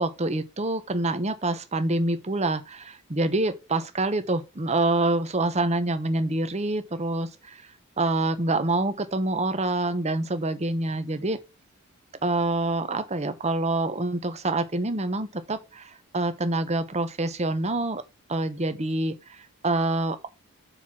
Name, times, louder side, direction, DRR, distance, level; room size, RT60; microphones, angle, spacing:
voice 1, 0.0-7.6 8.0-11.4 12.2-18.0 18.3-19.2 19.6-20.2, right 2 dB, 30° right, 0.9 m, -26 dB
6.5 x 4.6 x 5.8 m
head